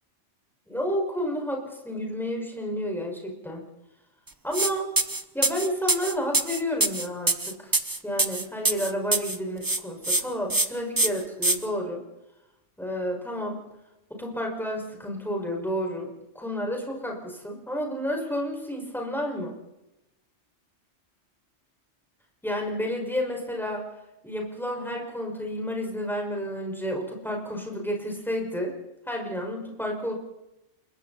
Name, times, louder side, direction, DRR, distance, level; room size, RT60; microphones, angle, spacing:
voice 1, 0.7-3.6 4.4-4.9 5.3-7.7 8.0-12.0 12.8-13.6 14.1-19.6 22.4-23.9 24.2-28.7 29.1-30.1, equal, ahead, 0 dB, 5.7 m, -31 dB
sound 1, 4.5-4.7 5.0-9.4 9.6-10.2 10.5-10.7 11.0-11.6, right 2 dB, 20° right, 1.0 m, -24 dB
28.0 x 22.5 x 4.3 m, 0.92 s
omnidirectional pair, 1.2 m